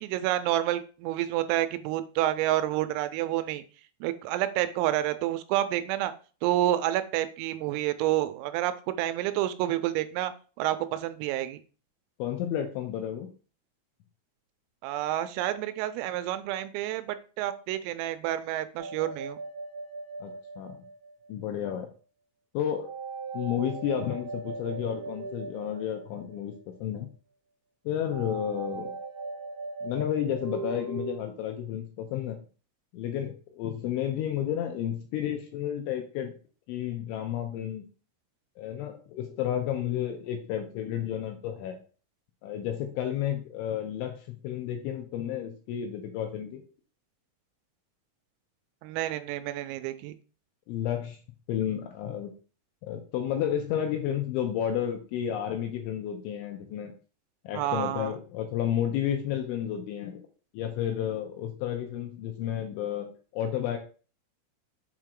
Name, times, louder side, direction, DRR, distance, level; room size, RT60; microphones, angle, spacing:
voice 1, 0.0-3.6 4.0-6.1 6.4-8.7 9.0-10.3 10.6-11.6 14.8-19.4 48.8-50.1 57.5-58.1, right 13 dB, 85° right, 11 dB, 3.2 m, -29 dB
voice 2, 12.2-13.3 20.2-20.3 20.6-20.8 21.3-21.9 22.5-22.9 23.3-26.5 26.8-27.1 27.9-28.9 29.8-32.4 32.9-36.3 36.7-37.9 38.6-41.8 42.4-46.6 50.7-51.2 51.5-52.3 52.8-56.9 57.4-60.2 60.5-63.8, left 10 dB, 80° left, 4 dB, 2.9 m, -31 dB
sound 1, 18.8-21.5 22.8-26.7 28.1-31.2, right 4 dB, 15° right, 2.3 m, -39 dB
7.5 x 4.5 x 3.7 m, 0.37 s
omnidirectional pair, 5.9 m